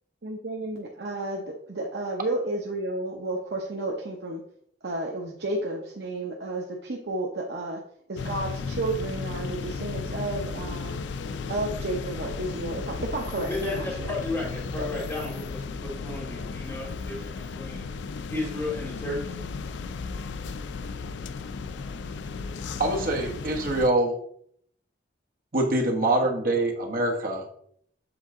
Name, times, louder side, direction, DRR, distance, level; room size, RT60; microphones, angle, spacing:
voice 1, 0.2-4.4 4.8-7.8 8.1-11.0 11.5-14.1 14.8-15.1, right 2 dB, 70° right, -1 dB, 0.9 m, -32 dB
sound 1, 8.2-23.9, left 4 dB, 80° left, 0.4 m, -35 dB
voice 2, 13.5-17.9 18.3-19.3, left 2 dB, 15° left, -5 dB, 2.5 m, -33 dB
voice 3, 22.8-24.1 25.5-27.4, right 2 dB, 50° right, 1 dB, 1.2 m, -24 dB
7.9 x 3.8 x 3.7 m, 0.65 s
head